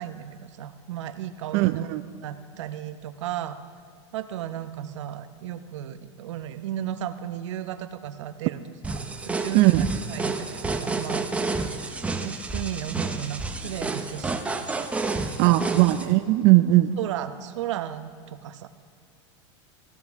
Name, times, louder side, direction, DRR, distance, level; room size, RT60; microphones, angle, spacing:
voice 1, 0.0-1.9 2.2-3.6 4.1-8.6 8.9-11.3 11.8-14.3 14.6-14.9 15.4-15.8 17.0-18.7, right 11 dB, 80° right, 10 dB, 0.9 m, -35 dB
voice 2, 1.5-2.0 9.5-9.9 15.4-17.0, right 17 dB, 50° right, 9 dB, 0.5 m, -19 dB
sound 1, 8.8-16.1, right 3 dB, 10° right, 0.8 m, -30 dB
19.5 x 15.5 x 3.6 m, 2.3 s
supercardioid pair, 135°, 15 cm